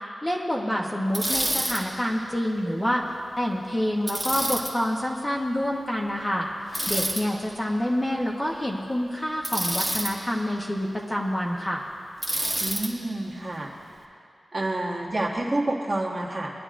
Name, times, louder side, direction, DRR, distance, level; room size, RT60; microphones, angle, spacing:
voice 1, 0.2-3.0 3.4-6.5 6.9-11.9, equal, 15° left, -2 dB, 0.9 m, -27 dB
Bicycle, 1.1-1.8 4.1-4.7 6.7-7.2 9.4-10.1 12.2-12.9, right 1 dB, ahead, 1.3 m, -27 dB
voice 2, 12.6-13.7 14.5-16.5, right 2 dB, 30° right, -2 dB, 1.4 m, -28 dB
22.0 x 10.5 x 2.5 m, 2.4 s
wide cardioid pair, 155°, 0 cm